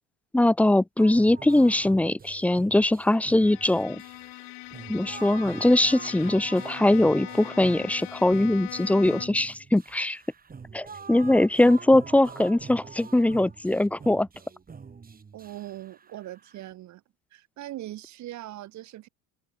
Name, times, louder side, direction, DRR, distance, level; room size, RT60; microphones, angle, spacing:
voice 1, 0.3-4.0 4.9-10.2 10.7-14.3, left 1 dB, 5° left, 0.6 m, -21 dB
sound 1, 1.0-16.7, right 5 dB, 25° right, 3.5 m, -45 dB
Bowed string instrument, 3.1-9.5, left 40 dB or more, 65° left, 0.9 m, -41 dB
voice 2, 15.3-17.0 17.3-19.1, right 14 dB, 50° right, 2.1 m, -40 dB
hypercardioid pair, 85°, 37 cm